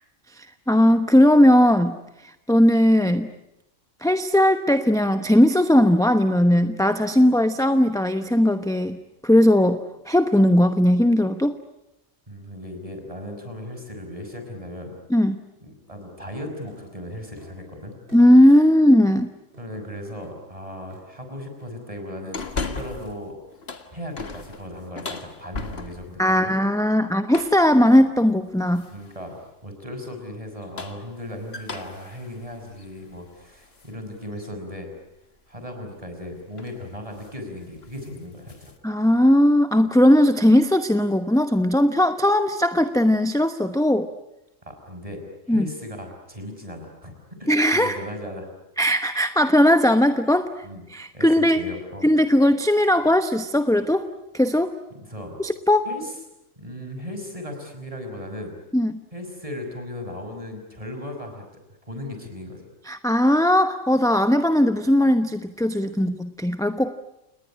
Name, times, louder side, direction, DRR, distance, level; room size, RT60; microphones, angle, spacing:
voice 1, 0.4-2.0 2.2-3.3 4.0-9.0 9.2-11.6 15.1-15.4 18.1-19.3 26.2-28.9 38.8-44.1 45.5-45.7 47.5-48.0 48.8-50.6 50.9-51.6 52.0-54.1 54.3-54.7 55.4-55.9 58.7-59.0 62.9-66.9, left 1 dB, 5° left, 8 dB, 0.9 m, -18 dB
voice 2, 12.3-14.9 15.6-18.0 19.6-23.3 23.9-26.5 28.9-29.4 29.6-34.9 35.5-38.7 44.6-48.5 50.6-50.8 51.1-52.1 54.9-55.4 55.9-56.1 56.6-58.5 59.1-61.4 61.9-62.7, left 1 dB, 25° right, 4 dB, 5.7 m, -37 dB
sound 1, 16.7-16.9 17.4-17.6 18.1-18.3 18.9-19.0 19.5-19.7 20.2-20.4 20.9-21.1 21.6-21.8 22.2-22.4, right 2 dB, 45° right, 7.3 m, -48 dB
sound 2, 22.3-23.2 23.5-26.2 27.3-27.7 28.7-29.2 30.5-33.9 34.4-34.5 36.0-36.2 36.6-36.8 37.1-37.4 37.7-38.8, left 4 dB, 55° left, 1.9 m, -36 dB
29.5 x 20.0 x 9.9 m, 0.90 s
omnidirectional pair, 1.3 m